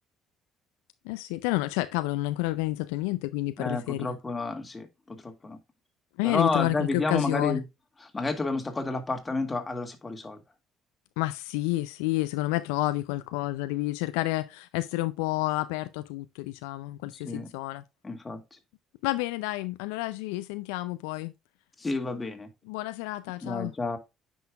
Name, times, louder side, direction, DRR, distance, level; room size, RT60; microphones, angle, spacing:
voice 1, 1.1-4.2 6.2-7.6 11.2-17.8 19.0-21.3 22.7-23.7, left 18 dB, 80° left, 0.4 m, -30 dB
voice 2, 3.6-5.6 6.2-7.6 8.1-10.4 17.1-17.5 18.0-18.4 21.8-22.5 23.4-24.0, left 3 dB, 25° left, 1.9 m, -30 dB
9.3 x 5.5 x 2.3 m
hypercardioid pair, 55°, 0 cm